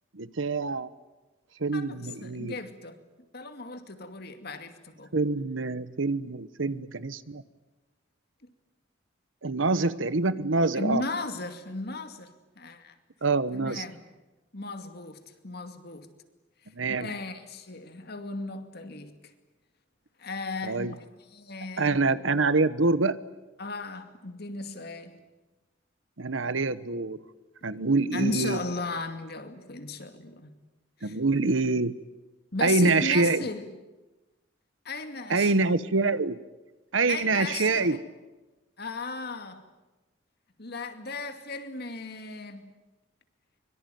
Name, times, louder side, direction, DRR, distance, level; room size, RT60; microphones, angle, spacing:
voice 1, 0.1-0.9 1.6-2.5 5.1-7.4 9.4-11.0 13.2-13.8 16.8-17.1 20.6-20.9 21.8-23.2 26.2-27.2 27.6-28.6 31.0-31.9 32.6-33.5 35.3-36.4 36.9-38.0, right 3 dB, 90° right, 1.1 m, -25 dB
voice 2, 1.7-3.0 3.3-5.2 9.8-9.9 10.7-12.9 13.5-14.0 14.5-16.1 17.0-19.3 20.2-22.0 23.6-25.2 28.1-30.6 31.0-31.2 32.5-33.8 34.8-35.5 37.1-38.0 38.8-39.7 40.6-42.7, left 3 dB, 55° left, 2.4 m, -36 dB
24.5 x 23.0 x 9.3 m
head